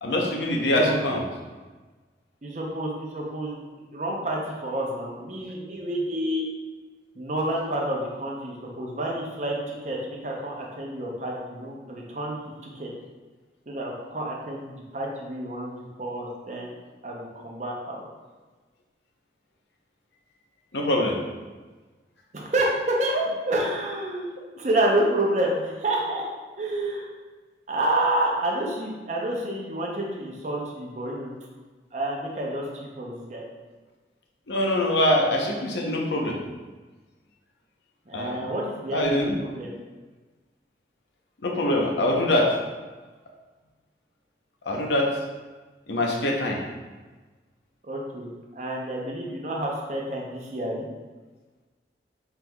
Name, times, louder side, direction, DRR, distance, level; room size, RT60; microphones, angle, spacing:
voice 1, 0.0-1.2 20.7-21.2 34.5-36.4 38.1-38.4 38.9-39.4 41.4-42.5 44.6-45.2 45.9-46.6, left 1 dB, 80° left, 0 dB, 0.8 m, -23 dB
voice 2, 0.5-1.0 2.4-3.6 3.9-6.5 7.2-12.9 13.7-16.7 17.0-18.0 22.3-26.2 26.6-27.1 27.7-31.3 31.9-33.5 38.1-39.7 47.8-50.9, right 1 dB, 40° right, -2 dB, 0.7 m, -29 dB
5.9 x 3.4 x 2.3 m, 1.3 s
head